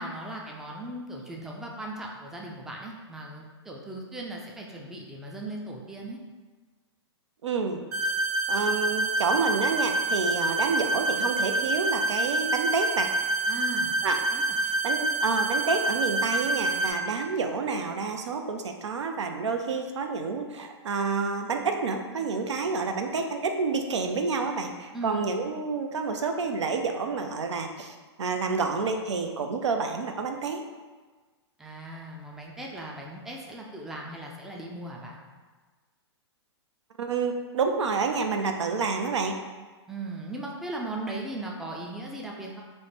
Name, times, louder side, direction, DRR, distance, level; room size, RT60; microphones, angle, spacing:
voice 1, 0.0-6.2 13.5-13.9 14.3-14.6 24.9-25.3 31.6-35.2 39.9-42.6, right 1 dB, 5° right, -2 dB, 0.3 m, -38 dB
voice 2, 7.4-7.8 8.5-13.1 14.0-14.2 14.6-30.6 37.0-39.3, right 4 dB, 80° right, 5 dB, 0.5 m, -29 dB
sound 1, 7.9-16.9, right 2 dB, 20° right, 0.7 m, -27 dB
3.1 x 2.1 x 4.2 m, 1.4 s
hypercardioid pair, 125°, 15 cm